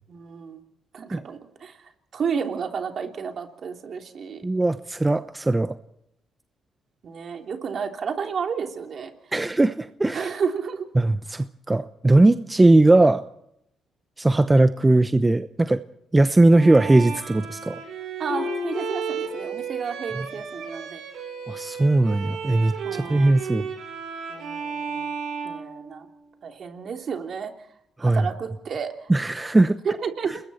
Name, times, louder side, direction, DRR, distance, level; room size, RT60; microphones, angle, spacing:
voice 1, 0.1-0.6 0.9-4.4 7.0-9.1 10.1-10.9 14.8-15.1 18.2-21.0 22.8-23.4 24.3-25.1 25.4-26.1 26.4-27.5 28.0-29.1 29.8-30.4, right 6 dB, 55° right, 4 dB, 3.2 m, -31 dB
voice 2, 4.4-5.8 9.3-10.3 11.0-13.2 14.2-15.8 16.1-17.8 21.5-23.6 28.0-28.3 29.1-29.8 30.2-30.4, right 2 dB, 15° right, 11 dB, 0.9 m, -19 dB
Bowed string instrument, 16.5-26.3, right 6 dB, 85° right, 7.6 m, -34 dB
Harp, 18.3-20.1 20.4-20.8 21.4-21.5, left 7 dB, 60° left, 1.2 m, -34 dB
29.0 x 21.0 x 4.4 m, 0.76 s
cardioid pair, 90°, 0 cm